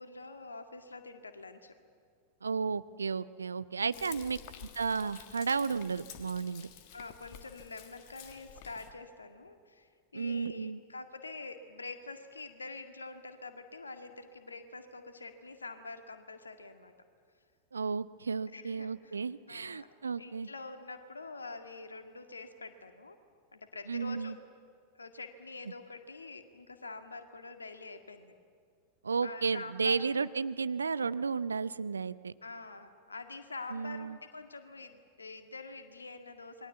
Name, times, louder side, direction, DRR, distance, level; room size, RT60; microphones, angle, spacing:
voice 1, 0.0-1.8 4.0-4.4 6.9-16.9 18.5-19.2 19.5-19.9 20.2-23.2 23.5-24.4 25.0-28.3 29.2-30.1 32.4-36.7, left 3 dB, 75° left, 7 dB, 2.0 m, -46 dB
voice 2, 2.4-6.7 10.1-10.8 17.7-20.5 23.9-24.3 29.0-32.3 33.7-34.2, right 5 dB, 75° right, 16 dB, 0.6 m, -33 dB
Frying (food), 3.9-8.9, left 10 dB, 45° left, 1.9 m, -51 dB
27.5 x 21.5 x 8.3 m, 2.1 s
figure-of-eight pair, 90°, 0 cm